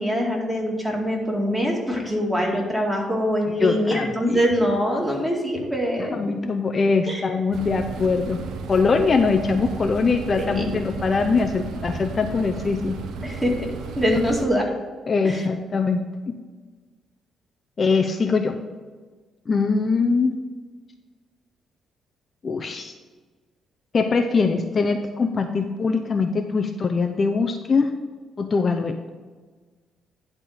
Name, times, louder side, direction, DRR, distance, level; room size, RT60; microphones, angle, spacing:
voice 1, 0.0-6.2 7.1-7.2 10.4-10.6 13.2-14.7 15.2-15.4, equal, 10° right, -1 dB, 2.1 m, -24 dB
voice 2, 3.5-4.4 6.0-8.4 8.7-13.0 15.1-16.4 17.8-18.6 19.5-20.3 22.4-22.9 23.9-28.0 28.4-29.1, left 4 dB, 40° left, 4 dB, 0.6 m, -22 dB
sound 1, 7.5-14.5, right 5 dB, 80° right, 0.7 m, -34 dB
11.0 x 3.7 x 6.4 m, 1.4 s
cardioid pair, 90°, 0 cm